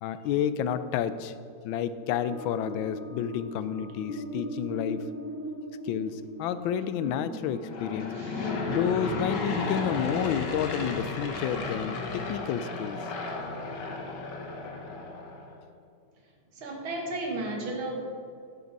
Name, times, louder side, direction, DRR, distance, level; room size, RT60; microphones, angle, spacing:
voice 1, 0.0-1.4 1.6-5.0 5.8-8.1 8.7-13.0, left 9 dB, 75° left, 13 dB, 1.3 m, -30 dB
sound 1, 1.9-11.3, equal, 10° right, 1.6 m, -40 dB
Aircraft / Engine, 7.6-15.5, left 3 dB, 60° left, 1.6 m, -34 dB
voice 2, 8.1-8.6 16.5-18.0, right 2 dB, 70° right, 1 dB, 2.4 m, -34 dB
11.5 x 11.0 x 4.0 m, 2.4 s
omnidirectional pair, 2.3 m